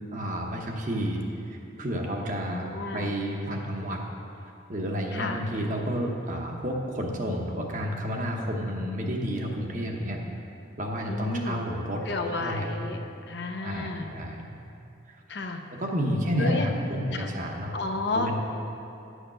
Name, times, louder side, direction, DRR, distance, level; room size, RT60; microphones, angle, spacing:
voice 1, 0.1-2.7 2.9-4.0 4.7-10.2 10.8-12.0 12.3-12.7 13.6-14.5 15.1-15.2 15.7-17.7 18.1-18.4, equal, 40° right, 1 dB, 1.0 m, -30 dB
voice 2, 2.5-3.1 5.1-5.4 11.1-11.6 12.1-13.0 13.3-14.1 15.3-15.6 16.4-16.7 17.1-17.3 17.7-18.3, left 2 dB, 55° left, 4 dB, 0.7 m, -31 dB
9.9 x 6.5 x 6.2 m, 2.7 s
head